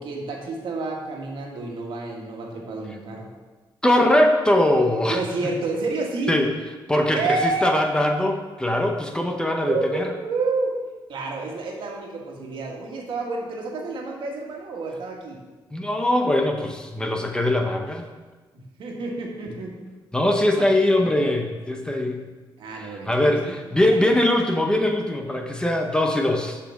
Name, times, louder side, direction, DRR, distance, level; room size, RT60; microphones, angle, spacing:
voice 1, 0.0-3.3 5.1-6.4 7.1-7.8 9.6-10.7 11.1-15.4 18.5-19.8 20.6-20.7 20.9-21.2 22.6-23.6, right 3 dB, 70° right, 0 dB, 1.7 m, -29 dB
voice 2, 3.8-5.2 6.3-6.5 6.9-10.1 15.7-18.1 20.1-22.3 22.8-26.6, left 1 dB, 10° left, 3 dB, 0.8 m, -21 dB
6.6 x 5.1 x 7.0 m, 1.3 s
cardioid pair, 130°, 9 cm